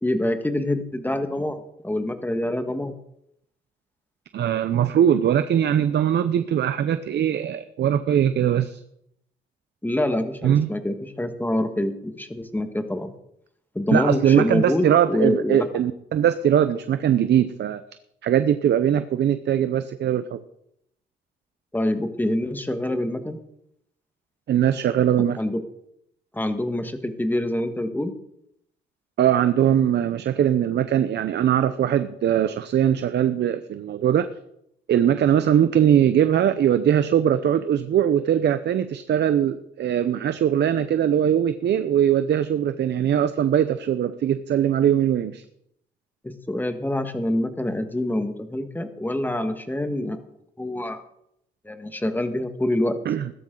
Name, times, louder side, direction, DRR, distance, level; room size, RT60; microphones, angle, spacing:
voice 1, 0.0-2.9 9.8-13.1 13.8-15.7 21.7-23.4 25.4-25.6 26.3-28.1 46.2-50.2 50.6-51.0 51.7-53.0, left 1 dB, 10° left, 8 dB, 1.7 m, -26 dB
voice 2, 4.3-8.8 10.4-10.7 13.9-17.8 18.2-20.4 24.5-25.4 29.2-34.3 34.9-45.4 53.0-53.3, right 10 dB, 60° right, 11 dB, 0.8 m, -21 dB
16.0 x 13.0 x 3.9 m, 0.77 s
cardioid pair, 90°, 20 cm